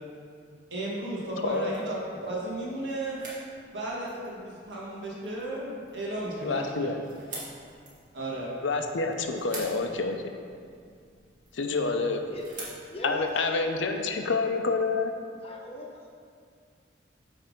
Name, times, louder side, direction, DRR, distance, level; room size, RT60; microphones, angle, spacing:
voice 1, 0.7-3.2 3.7-6.9 8.1-8.6, right 1 dB, 65° right, -5 dB, 1.6 m, -34 dB
sound 1, 1.1-14.0, right 2 dB, 45° right, 1.9 m, -48 dB
voice 2, 6.4-7.0 8.6-10.2 11.5-12.2 13.0-15.1, left 3 dB, 80° left, 5 dB, 0.6 m, -28 dB
voice 3, 12.9-14.2 15.4-16.1, left 1 dB, 30° left, -1 dB, 0.9 m, -40 dB
8.7 x 3.5 x 5.2 m, 2.2 s
head